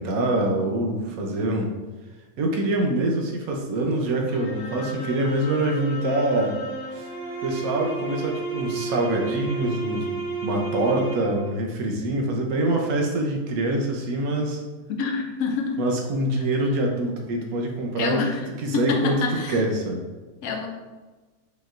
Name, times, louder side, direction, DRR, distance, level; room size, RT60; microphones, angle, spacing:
voice 1, 0.0-1.7 2.4-6.6 6.9-7.1 7.4-14.6 15.8-18.2 18.6-19.2 19.5-20.0, right 1 dB, 85° right, 1 dB, 1.2 m, -25 dB
sound 1, 4.3-11.6, right 4 dB, 25° left, 1.5 m, -32 dB
voice 2, 14.9-15.9 18.0-18.5 18.7-19.6 20.4-20.7, left 4 dB, 90° left, 4 dB, 1.1 m, -27 dB
5.0 x 3.1 x 2.4 m, 1.3 s
omnidirectional pair, 1.5 m